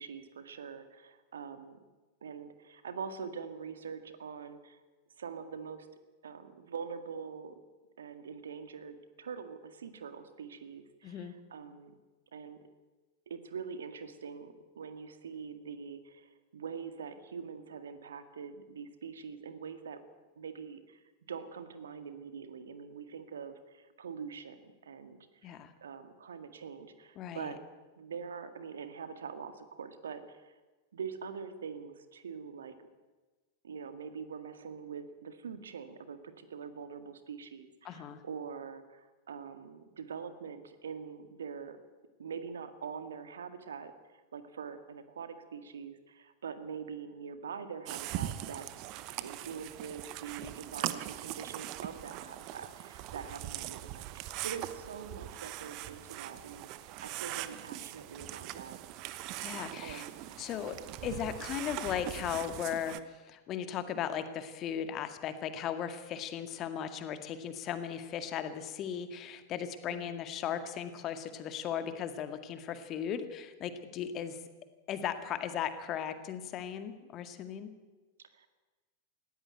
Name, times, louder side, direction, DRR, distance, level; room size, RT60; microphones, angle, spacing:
voice 1, 0.0-1.8 2.2-4.8 5.2-5.9 6.2-7.5 8.0-11.9 12.3-12.6 13.3-20.0 20.4-21.0 21.3-27.6 28.0-30.5 30.9-32.7 33.6-41.8 42.2-43.9 44.3-48.7 49.2-58.8 59.8-60.5 61.0-61.2 69.9-70.2 78.2-78.5, right 6 dB, 65° right, 10 dB, 1.9 m, -44 dB
voice 2, 11.0-11.3 25.4-25.7 27.2-27.5 37.8-38.2 59.4-60.1 60.4-60.8 61.0-74.4 74.9-77.7, left 9 dB, 35° left, 9 dB, 2.0 m, -37 dB
sound 1, 47.9-63.0, right 14 dB, 40° right, 1.0 m, -41 dB
19.0 x 16.0 x 9.2 m, 1.2 s
figure-of-eight pair, 90°, 0 cm